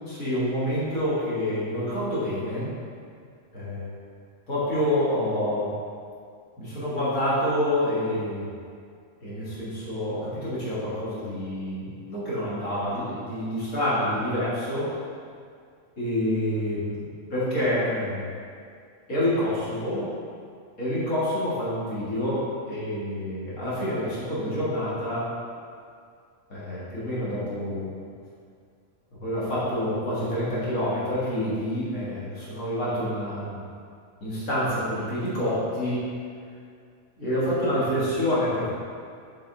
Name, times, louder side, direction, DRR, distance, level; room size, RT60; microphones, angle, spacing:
voice 1, 0.1-2.7 3.5-3.9 4.5-5.8 6.6-8.5 9.2-14.9 16.0-18.3 19.1-20.1 20.8-25.3 26.5-27.9 29.2-33.6 34.2-36.0 37.2-38.7, left 1 dB, 75° left, -10 dB, 2.1 m, -27 dB
6.4 x 4.4 x 3.8 m, 2.2 s
omnidirectional pair, 1.5 m